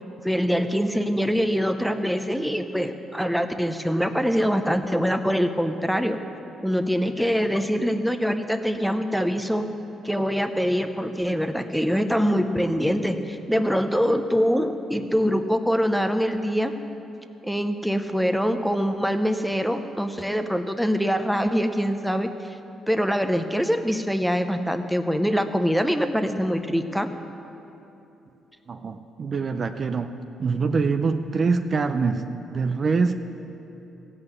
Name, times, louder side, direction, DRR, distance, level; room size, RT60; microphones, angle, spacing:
voice 1, 0.2-6.2 6.6-9.7 10.0-16.7 17.4-22.6 22.9-27.1, equal, ahead, 7 dB, 0.7 m, -24 dB
voice 2, 28.7-30.1 30.4-32.2 32.5-33.1, right 4 dB, 45° right, 8 dB, 0.5 m, -24 dB
15.5 x 5.5 x 8.0 m, 2.9 s
cardioid pair, 90°, 0 cm